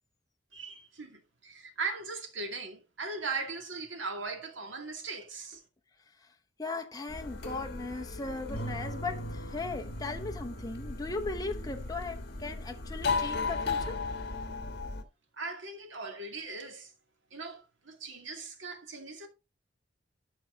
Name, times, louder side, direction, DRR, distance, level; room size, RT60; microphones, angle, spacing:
voice 1, 0.5-5.6 15.4-16.9 17.3-19.3, right 4 dB, 80° right, 2.3 m, -39 dB
voice 2, 6.6-14.0, left 3 dB, 20° left, 0.9 m, -38 dB
sound 1, 7.1-15.0, left 3 dB, 60° left, 1.4 m, -36 dB
12.0 x 4.7 x 3.9 m
head